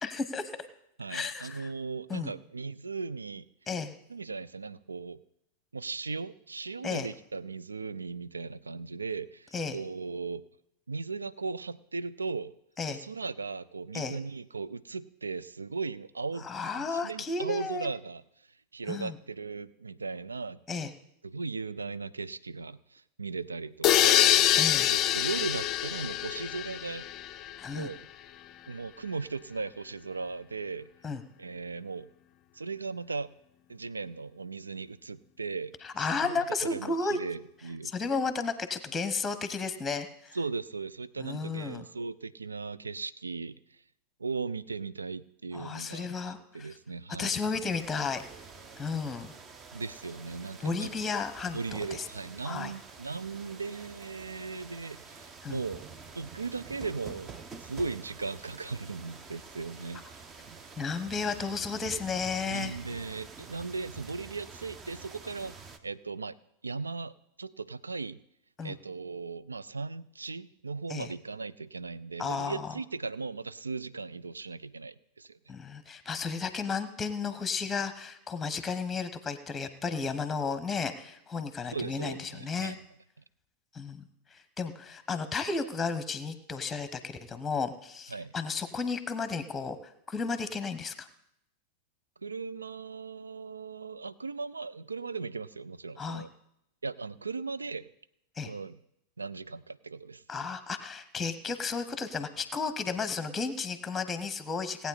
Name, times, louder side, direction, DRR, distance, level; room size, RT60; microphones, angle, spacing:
voice 1, 0.0-0.4 1.1-1.7 2.1-2.3 3.7-3.9 6.8-7.1 9.5-9.8 12.8-13.0 13.9-14.2 16.4-17.9 18.9-19.1 20.7-20.9 24.6-24.9 27.6-27.9 31.0-31.2 35.8-37.2 37.8-40.4 41.2-41.9 45.5-46.7 47.2-48.2 48.8-49.3 50.6-51.6 51.9-52.0 52.4-52.7 55.4-55.6 60.8-62.7 68.6-68.7 70.9-71.1 72.2-72.7 75.5-82.8 83.7-84.0 84.3-91.1 96.0-96.2 98.4-98.5 100.3-104.9, left 4 dB, 15° left, 11 dB, 1.0 m, -33 dB
voice 2, 1.0-3.5 4.1-5.2 5.7-10.4 10.9-12.5 12.9-16.5 16.8-18.2 18.7-20.6 21.2-24.4 24.9-27.0 27.7-28.0 28.7-30.9 31.4-32.1 32.5-33.3 33.7-35.7 36.2-37.9 40.3-43.6 44.2-47.4 49.7-50.9 51.5-55.9 56.1-57.3 57.6-60.2 62.5-65.6 65.8-66.4 66.6-67.1 67.4-68.2 68.6-75.4 81.7-82.8 88.1-88.3 92.2-96.3 96.8-97.9 98.4-98.8 99.2-100.2, right 4 dB, 75° right, 17 dB, 0.4 m, -37 dB
sound 1, 23.8-27.6, left 12 dB, 35° left, 0.4 m, -25 dB
sound 2, 47.6-65.8, right 5 dB, 25° right, 1.0 m, -48 dB
18.0 x 8.5 x 4.1 m, 0.79 s
figure-of-eight pair, 90°, 0 cm